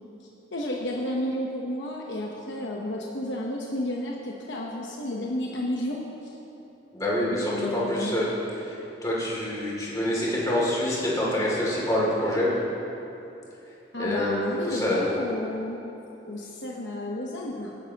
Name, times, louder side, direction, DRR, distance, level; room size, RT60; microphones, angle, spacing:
voice 1, 0.5-6.3 7.5-8.2 13.9-15.8 16.3-17.8, left 1 dB, 75° left, -2 dB, 1.0 m, -31 dB
voice 2, 6.9-8.3 8.6-12.5 14.0-15.1, left 1 dB, 20° left, -5 dB, 2.6 m, -26 dB
18.0 x 10.5 x 2.9 m, 2.9 s
head